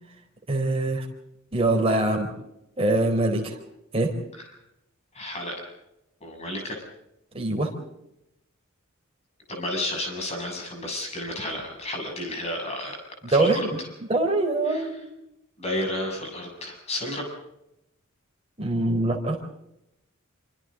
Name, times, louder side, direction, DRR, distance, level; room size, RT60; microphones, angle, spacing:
voice 1, 0.5-1.1 1.5-2.3 2.8-3.6 3.9-4.1 7.3-7.7 13.3-13.7 14.1-15.0 18.6-19.4, right 2 dB, 30° right, 1 dB, 4.2 m, -23 dB
voice 2, 5.1-5.7 6.2-6.8 9.5-13.0 13.3-13.7 14.7-14.9 15.6-17.3, left 1 dB, 30° left, 2 dB, 7.2 m, -32 dB
26.5 x 25.5 x 3.9 m, 0.84 s
head